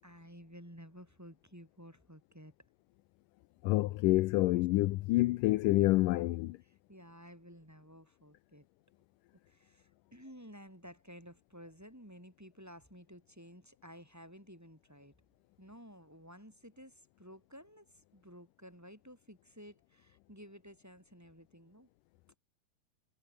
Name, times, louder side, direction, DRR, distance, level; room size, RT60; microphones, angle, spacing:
voice 1, 0.0-2.5 6.6-8.7 9.5-15.1 15.6-21.9, equal, 5° right, 7.4 m, -54 dB
voice 2, 3.6-6.6, left 19 dB, 85° left, 1.9 m, -28 dB
omnidirectional pair, 4.5 m